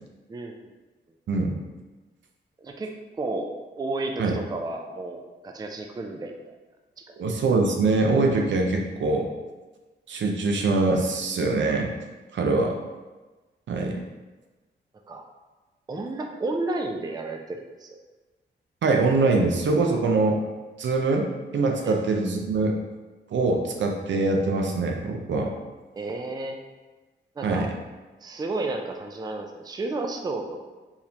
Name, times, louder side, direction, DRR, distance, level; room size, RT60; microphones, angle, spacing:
voice 1, 1.3-1.6 4.2-4.4 7.2-9.3 10.1-11.9 12.3-12.7 13.7-14.0 18.8-20.4 20.8-22.8 23.3-25.5 27.4-27.7, right 3 dB, 75° right, 2 dB, 0.7 m, -23 dB
voice 2, 2.6-2.9 3.2-3.5 3.8-6.6 7.0-7.2 15.1-15.2 15.9-18.0 21.8-22.0 26.0-26.6 27.4-27.7 28.2-30.6, right 2 dB, 20° right, 3 dB, 0.4 m, -32 dB
4.6 x 3.5 x 2.8 m, 1.2 s
wide cardioid pair, 110°, 19 cm